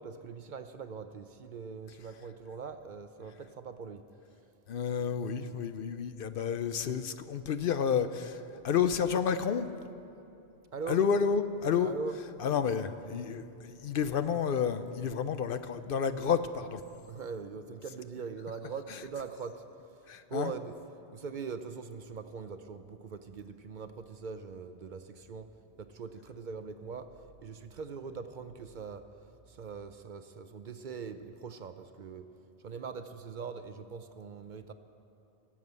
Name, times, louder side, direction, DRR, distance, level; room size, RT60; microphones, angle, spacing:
voice 1, 0.0-4.0 10.7-11.0 11.8-12.2 17.1-19.6 20.3-20.8 21.1-25.5 25.8-27.1 27.4-32.3 32.6-34.7, right 5 dB, 55° right, 9 dB, 0.7 m, -42 dB
voice 2, 4.7-9.7 10.9-11.9 12.4-16.8 20.1-20.5, left 7 dB, 65° left, 11 dB, 0.7 m, -30 dB
17.0 x 7.3 x 8.1 m, 2.8 s
omnidirectional pair, 1.1 m